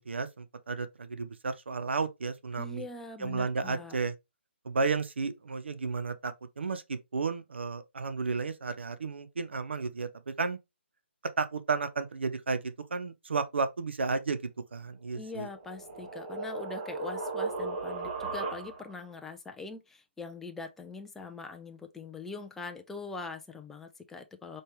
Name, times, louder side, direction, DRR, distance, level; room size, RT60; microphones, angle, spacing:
voice 1, 0.1-2.8 3.2-4.1 4.6-10.6 11.4-14.4 14.7-15.5, right 4 dB, 65° right, 0.8 m, -33 dB
voice 2, 2.6-4.0 15.1-24.6, left 3 dB, 5° left, 0.4 m, -43 dB
sound 1, 15.3-19.0, right 3 dB, 35° right, 1.2 m, -36 dB
4.3 x 3.3 x 3.2 m
figure-of-eight pair, 140°, 7 cm